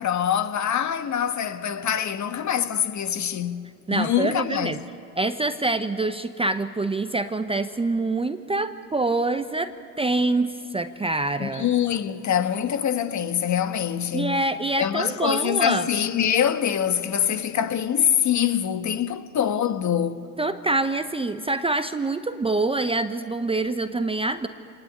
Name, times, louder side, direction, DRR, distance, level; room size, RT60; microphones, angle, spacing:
voice 1, 0.0-4.9 11.4-14.4 14.8-20.3, left 9 dB, 35° left, 1.4 m, -24 dB
voice 2, 3.9-4.8 5.2-11.7 14.1-15.9 20.4-24.5, right 2 dB, 10° right, 0.8 m, -25 dB
26.5 x 19.5 x 8.5 m
hypercardioid pair, 85°, 48 cm